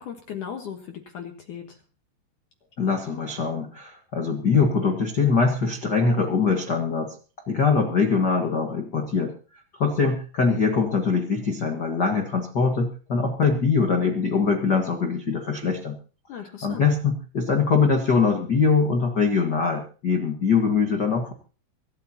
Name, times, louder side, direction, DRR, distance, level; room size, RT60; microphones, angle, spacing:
voice 1, 0.0-1.8 16.3-16.9, left 8 dB, 60° left, 4 dB, 2.4 m, -37 dB
voice 2, 2.8-7.1 7.5-9.3 9.8-16.0 16.6-21.3, left 5 dB, 80° left, 3 dB, 0.9 m, -22 dB
24.5 x 12.5 x 2.9 m, 0.37 s
omnidirectional pair, 4.9 m